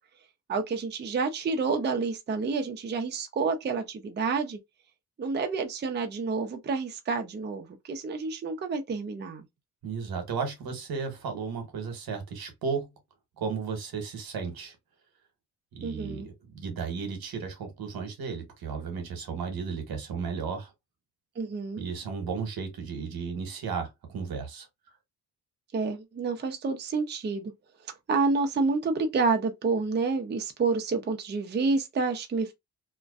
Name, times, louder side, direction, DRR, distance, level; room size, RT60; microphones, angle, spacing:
voice 1, 0.5-4.6 5.2-9.4 15.8-16.3 21.4-21.8 25.7-27.5 28.1-32.5, right 4 dB, 30° right, 0.5 m, -29 dB
voice 2, 9.8-12.9 13.4-14.8 15.7-20.7 21.8-24.7, right 5 dB, 70° right, 1.0 m, -34 dB
2.5 x 2.2 x 2.3 m
cardioid pair, 75°, 38 cm